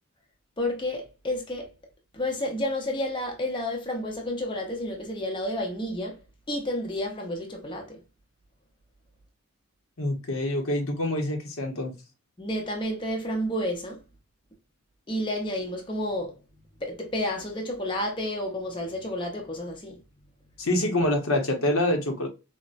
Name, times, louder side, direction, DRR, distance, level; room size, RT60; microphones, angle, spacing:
voice 1, 0.6-1.7 2.1-6.2 6.5-8.0 12.4-14.0 15.1-20.7, left 1 dB, 25° left, 0.6 m, -31 dB
voice 2, 10.0-11.9 20.6-22.3, left 1 dB, 75° left, 0.8 m, -26 dB
4.0 x 2.1 x 2.4 m
head